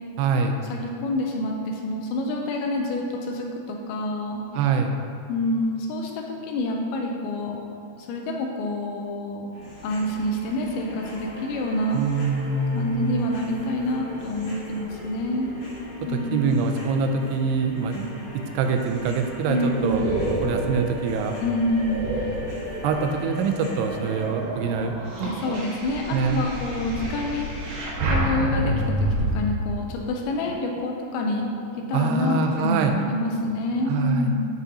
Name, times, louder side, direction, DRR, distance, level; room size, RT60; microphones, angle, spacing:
voice 1, 0.2-0.6 4.5-4.9 11.9-13.3 16.1-20.1 20.4-21.4 22.8-24.9 25.2-25.3 26.1-26.5 31.9-33.0 33.9-34.3, right 5 dB, 85° right, 4 dB, 2.6 m, -24 dB
voice 2, 0.7-4.4 5.3-7.6 8.0-9.5 9.8-12.0 12.7-15.5 16.1-16.5 19.5-20.1 21.4-22.0 25.2-27.6 28.1-29.1 29.3-34.4, left 1 dB, 80° left, 1 dB, 2.4 m, -27 dB
sound 1, 9.5-24.2, left 1 dB, 55° left, 2.3 m, -39 dB
sound 2, 19.2-23.1 23.7-29.3, right 1 dB, 65° right, 3.0 m, -29 dB
8.1 x 7.6 x 2.8 m, 2.6 s
omnidirectional pair, 4.7 m